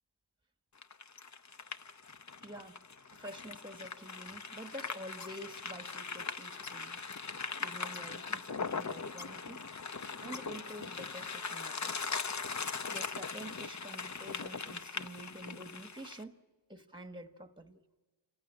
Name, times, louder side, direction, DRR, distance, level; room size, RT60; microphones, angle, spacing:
sound 1, 0.8-16.2, left 4 dB, 40° left, 0.7 m, -40 dB
voice 1, 2.4-2.8 3.1-7.1 7.6-9.6 10.2-11.9 12.9-16.3 16.7-17.8, right 1 dB, 10° right, 1.3 m, -48 dB
27.0 x 15.0 x 9.9 m
wide cardioid pair, 75°, 47 cm